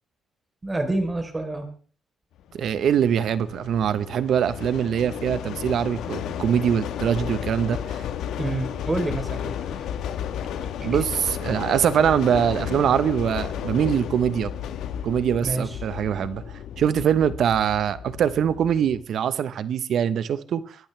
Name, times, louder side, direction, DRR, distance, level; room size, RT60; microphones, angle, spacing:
voice 1, 0.6-1.7 8.4-9.8 10.6-11.0 15.4-15.8, right 2 dB, 20° right, 5 dB, 3.7 m, -28 dB
sound 1, 2.5-19.0, left 9 dB, 85° left, 1.3 m, -33 dB
voice 2, 2.5-8.0 10.8-14.5 15.0-16.4 16.8-20.6, right 8 dB, 65° right, 14 dB, 1.0 m, -23 dB
23.0 x 12.0 x 3.4 m, 0.42 s
cardioid pair, 90°, 0 cm